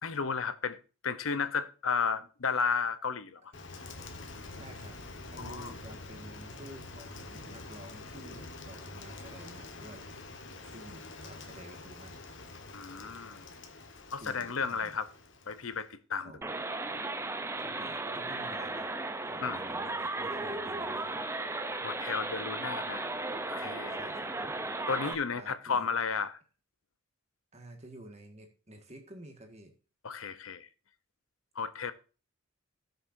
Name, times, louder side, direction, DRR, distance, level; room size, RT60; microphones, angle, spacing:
voice 1, 0.0-3.5 5.4-5.7 12.7-13.4 14.1-15.1 15.5-16.3 19.4-19.6 21.8-23.0 23.5-24.0 24.9-26.3 30.0-30.7 31.6-31.9, left 5 dB, 75° left, 0.8 m, -33 dB
Rain, 3.5-15.9, left 3 dB, 60° left, 1.4 m, -46 dB
voice 2, 4.5-5.0 5.3-10.0 10.6-12.2 14.2-15.0 16.2-16.5 17.6-18.9 19.2-21.2 23.9-24.6 25.3-25.9 27.5-29.7, right 1 dB, 30° right, 1.8 m, -51 dB
sound 1, 16.4-25.1, right 2 dB, 10° right, 0.6 m, -35 dB
17.0 x 6.7 x 2.7 m
head